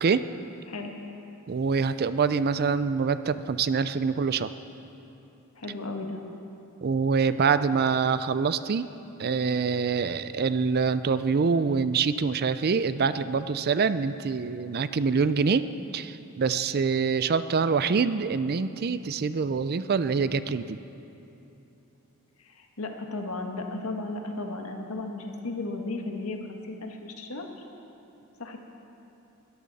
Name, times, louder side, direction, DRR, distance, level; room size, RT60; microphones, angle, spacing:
voice 1, 1.5-4.5 6.8-8.8 9.2-15.6 15.9-20.8, right 5 dB, 45° right, 13 dB, 0.4 m, -25 dB
voice 2, 5.5-6.2 22.4-27.5 28.4-28.6, left 2 dB, 75° left, 3 dB, 1.6 m, -35 dB
21.5 x 14.0 x 4.1 m, 3.0 s
head